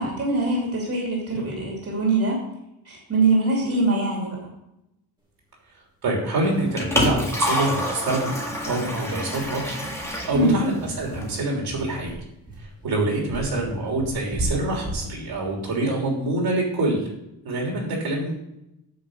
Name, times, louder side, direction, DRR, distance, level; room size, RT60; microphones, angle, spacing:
voice 1, 0.0-2.4 2.9-4.4 10.3-10.6, right 2 dB, 35° right, -3 dB, 2.8 m, -23 dB
voice 2, 6.0-12.2 12.6-17.1 17.4-18.3, right 2 dB, 65° right, -1 dB, 3.4 m, -26 dB
Liquid, 6.4-11.4, equal, 5° left, 1.7 m, -28 dB
sound 1, 9.3-16.8, equal, 10° right, 2.1 m, -35 dB
8.9 x 5.4 x 6.5 m, 0.85 s
wide cardioid pair, 150°, 40 cm